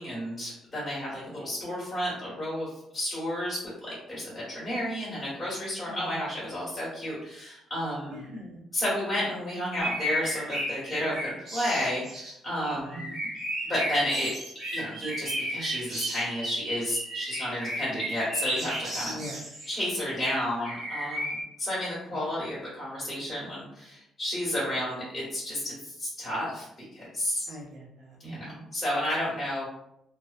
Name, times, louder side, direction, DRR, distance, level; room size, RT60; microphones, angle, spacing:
voice 1, 0.0-8.3 8.7-13.0 13.6-14.3 14.7-19.2 19.7-26.7 26.9-27.5 28.2-29.7, equal, 10° left, -9 dB, 1.2 m, -32 dB
voice 2, 5.9-6.4 8.1-8.6 12.9-13.3 19.1-19.4 22.1-22.2 27.5-28.6, right 1 dB, 65° right, -4 dB, 0.9 m, -42 dB
sound 1, 9.8-12.3 12.9-16.3 17.1-19.7 20.6-21.4, equal, 35° right, 0.9 m, -34 dB
Bird vocalization bird call bird song, 13.9-17.6, right 4 dB, 90° right, 0.6 m, -38 dB
2.6 x 2.2 x 2.3 m, 0.78 s
cardioid pair, 135°, 0 cm